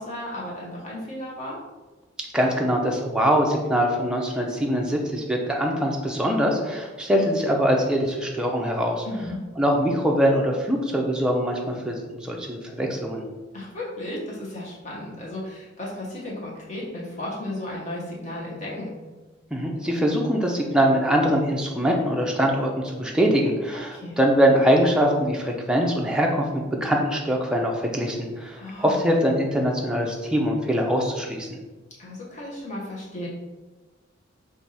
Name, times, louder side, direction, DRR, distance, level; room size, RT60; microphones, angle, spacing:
voice 1, 0.0-1.6 9.0-9.4 13.5-18.9 23.9-24.2 28.6-29.0 32.0-33.3, left 1 dB, 35° left, -5 dB, 1.1 m, -34 dB
voice 2, 2.3-9.0 9.6-13.2 19.5-31.6, equal, 5° right, 0 dB, 0.4 m, -23 dB
3.4 x 2.6 x 4.0 m, 1.2 s
head